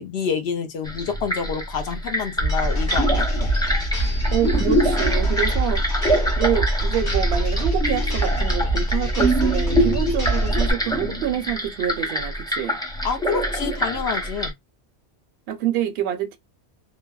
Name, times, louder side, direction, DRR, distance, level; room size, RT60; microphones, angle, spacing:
voice 1, 0.0-3.3 13.0-14.5, left 6 dB, 70° left, 0.9 m, -28 dB
sound 1, 0.8-14.5, equal, 5° left, 0.4 m, -25 dB
sound 2, 2.4-10.7, right 1 dB, 45° left, 1.3 m, -23 dB
voice 2, 4.3-5.8 6.4-12.8 15.5-16.4, right 10 dB, 70° right, 0.8 m, -26 dB
3.3 x 2.1 x 2.3 m
omnidirectional pair, 1.1 m